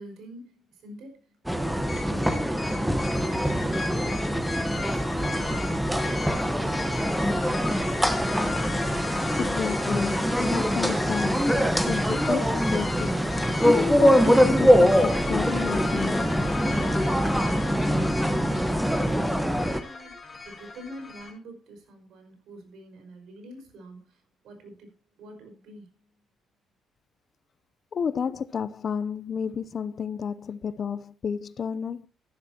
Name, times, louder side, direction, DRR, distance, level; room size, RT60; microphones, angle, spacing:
voice 1, 0.0-8.1 17.9-18.8 19.0-26.2, right 1 dB, 75° right, 5.2 m, -47 dB
sound 1, 1.5-19.8, equal, 5° right, 1.2 m, -24 dB
sound 2, 1.9-21.3, left 3 dB, 30° left, 7.5 m, -36 dB
sound 3, 3.0-17.0, right 3 dB, 40° right, 3.9 m, -48 dB
voice 2, 9.4-11.5 11.9-13.1 13.6-16.3 27.9-32.1, left 6 dB, 45° left, 0.6 m, -31 dB
14.0 x 11.5 x 2.9 m
cardioid pair, 105°, 0 cm